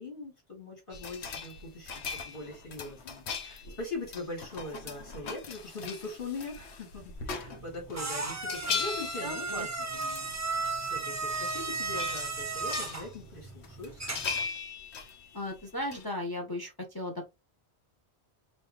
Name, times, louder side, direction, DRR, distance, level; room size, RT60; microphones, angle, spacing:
voice 1, 0.0-14.0, left 2 dB, 50° left, 2.4 m, -41 dB
sound 1, 0.9-8.0 8.3-10.4 10.6-10.7 11.1-11.6 11.9-13.3 13.6-16.0, left 5 dB, 75° left, 1.1 m, -39 dB
sound 2, 7.2-14.5, right 3 dB, 20° right, 0.5 m, -35 dB
voice 2, 9.2-9.7 15.3-17.3, left 1 dB, 20° left, 0.9 m, -36 dB
5.4 x 2.8 x 3.1 m
omnidirectional pair, 1.2 m